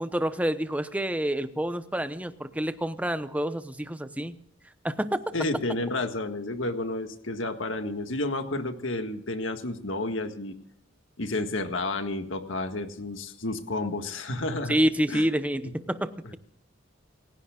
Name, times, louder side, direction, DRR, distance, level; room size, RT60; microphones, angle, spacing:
voice 1, 0.0-4.3 4.8-5.2 14.7-16.1, equal, 5° right, 11 dB, 0.8 m, -28 dB
voice 2, 5.3-10.5 11.2-14.8 15.1-15.3 16.2-16.3, left 2 dB, 85° left, 7 dB, 1.7 m, -31 dB
28.5 x 16.5 x 2.4 m, 0.67 s
head